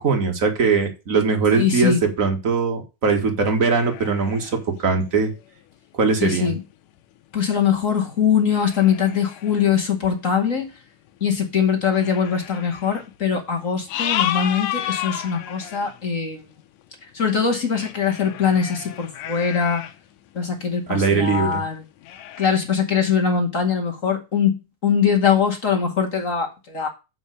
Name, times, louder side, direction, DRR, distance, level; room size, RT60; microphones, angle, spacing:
voice 1, 0.0-5.3 6.0-6.5 20.9-21.6, right 4 dB, 30° right, 4 dB, 1.6 m, -21 dB
voice 2, 1.5-2.1 6.2-6.6 7.3-10.7 11.2-16.5 17.1-19.8 20.3-21.8 22.4-24.6 24.8-26.9, left 7 dB, 30° left, 1 dB, 1.7 m, -22 dB
sound 1, 3.5-5.6 6.4-6.5 7.0-7.1 7.8-8.0 8.4-9.7 10.6-10.7 11.2-11.3 11.9-13.2 13.6-16.0 17.1-20.0 20.4-21.0 21.4-21.5 22.0-22.6, left 11 dB, 80° left, 2.3 m, -32 dB
7.5 x 5.2 x 6.5 m, 0.27 s
omnidirectional pair, 3.7 m